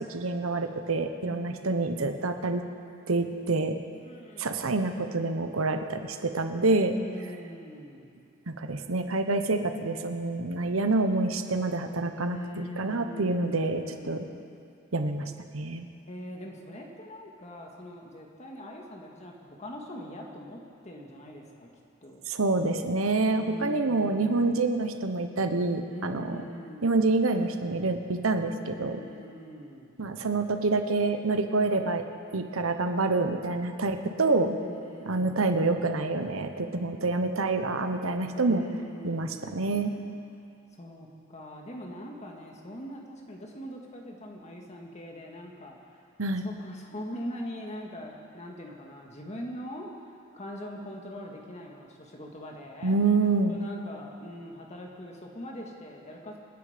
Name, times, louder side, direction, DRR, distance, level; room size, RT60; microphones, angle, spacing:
voice 1, 0.1-2.6 3.1-3.8 4.4-7.0 8.5-14.3 14.9-15.9 22.3-26.4 26.8-29.0 30.0-32.0 32.3-34.6 35.0-38.6 39.0-39.9 46.2-46.4 52.8-53.6, right 3 dB, 85° right, 7 dB, 1.1 m, -27 dB
voice 2, 1.2-2.0 3.9-4.6 7.0-8.2 12.2-14.3 16.1-21.7 22.0-22.2 23.4-24.6 25.9-27.0 28.7-29.9 34.6-35.5 38.3-40.0 40.7-46.0 46.4-53.0 53.5-56.4, equal, 35° left, 0 dB, 2.0 m, -42 dB
27.0 x 10.0 x 5.2 m, 2.5 s
head